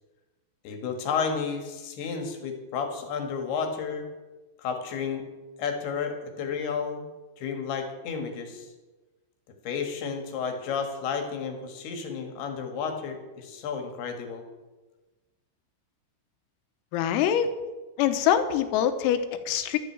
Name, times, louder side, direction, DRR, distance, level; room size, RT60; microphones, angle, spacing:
voice 1, 0.6-4.1 4.6-5.3 5.6-7.1 7.4-8.7 9.6-14.4, left 6 dB, 60° left, 4 dB, 3.1 m, -32 dB
voice 2, 16.9-17.5 18.0-19.8, left 9 dB, 85° left, 9 dB, 3.7 m, -24 dB
12.0 x 9.0 x 8.7 m, 1.2 s
omnidirectional pair, 6.0 m